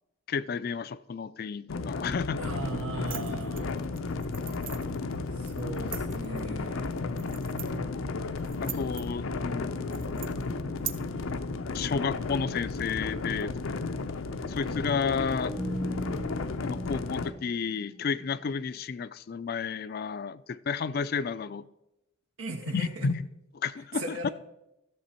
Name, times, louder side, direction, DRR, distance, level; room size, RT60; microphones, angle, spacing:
voice 1, 0.3-2.4 8.6-9.8 11.7-13.6 14.5-15.5 16.6-21.6 22.7-23.3 23.5-24.3, left 5 dB, 50° left, 16 dB, 0.3 m, -32 dB
sound 1, 1.7-17.3, left 3 dB, 85° left, 0.6 m, -33 dB
voice 2, 2.4-3.7 5.3-6.9 22.4-23.1 23.9-24.3, right 2 dB, 85° right, 3 dB, 1.0 m, -37 dB
sound 2, 3.1-10.9, right 10 dB, 45° right, 0.6 m, -43 dB
sound 3, 9.6-12.1 12.4-12.5 14.8-18.4, equal, ahead, 0.7 m, -41 dB
13.5 x 7.0 x 4.4 m, 0.89 s
head